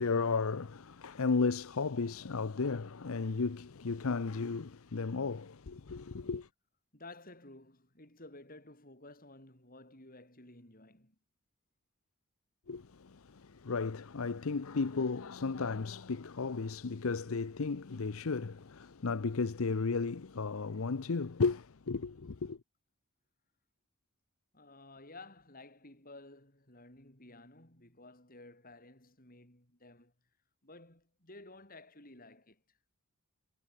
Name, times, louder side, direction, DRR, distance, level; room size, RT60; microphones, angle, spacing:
voice 1, 0.0-6.5 12.7-22.6, left 4 dB, 70° left, 0.7 m, -34 dB
voice 2, 6.9-11.2 24.5-30.1 30.6-32.8, left 2 dB, 40° left, 6.7 m, -54 dB
head